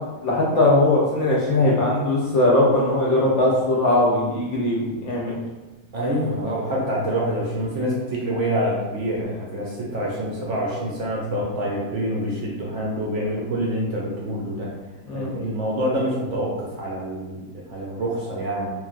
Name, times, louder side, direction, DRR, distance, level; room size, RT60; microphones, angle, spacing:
voice 1, 0.2-5.4 15.1-15.3, left 2 dB, 65° left, -4 dB, 0.8 m, -20 dB
voice 2, 5.9-14.7 15.1-18.7, equal, 65° right, -4 dB, 0.8 m, -26 dB
3.1 x 2.3 x 2.4 m, 1.2 s
omnidirectional pair, 1.6 m